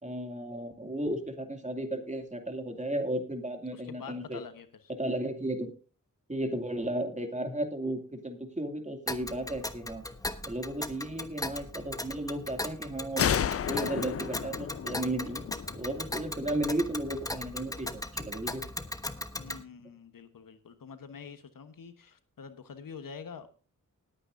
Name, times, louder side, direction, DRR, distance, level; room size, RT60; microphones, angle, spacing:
voice 1, 0.0-4.4 5.0-5.7 6.3-10.0 10.5-13.3 13.7-15.4 15.8-18.6, right 1 dB, 20° right, 4 dB, 2.5 m, -34 dB
voice 2, 3.7-4.7 19.4-23.5, left 6 dB, 80° left, 9 dB, 1.3 m, -46 dB
Tick, 9.1-19.6, left 1 dB, 10° left, 1.1 m, -38 dB
sound 1, 13.2-16.7, left 8 dB, 45° left, 0.4 m, -32 dB
20.0 x 9.0 x 2.6 m, 0.36 s
cardioid pair, 60°, 33 cm